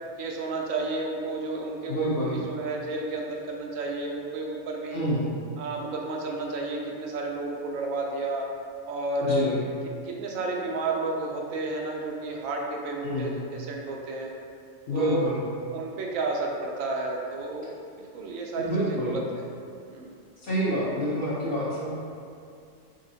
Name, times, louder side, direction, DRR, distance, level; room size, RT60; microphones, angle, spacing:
voice 1, 0.2-5.0 5.6-8.5 8.9-9.5 10.0-14.3 14.9-15.3 15.7-19.5 19.9-20.1, right 2 dB, 90° right, 0 dB, 1.0 m, -31 dB
voice 2, 1.9-2.4 4.9-5.3 9.2-9.6 13.0-13.3 14.9-15.4 18.5-19.2 20.4-22.0, equal, 50° left, -8 dB, 0.8 m, -27 dB
4.0 x 3.5 x 2.7 m, 2.4 s
omnidirectional pair, 1.3 m